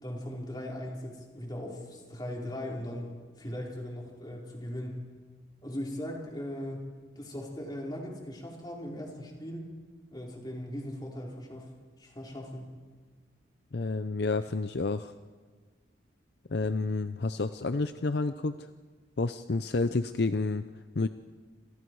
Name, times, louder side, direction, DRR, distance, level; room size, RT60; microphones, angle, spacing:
voice 1, 0.0-3.1 3.4-5.0 5.6-6.9 7.2-9.7 10.1-11.7 12.0-12.7, left 1 dB, 20° left, -2 dB, 4.4 m, -39 dB
voice 2, 13.7-15.1 16.5-18.6 19.2-20.6 20.9-21.1, left 3 dB, 55° left, 11 dB, 0.6 m, -29 dB
28.0 x 27.0 x 4.8 m, 1.5 s
head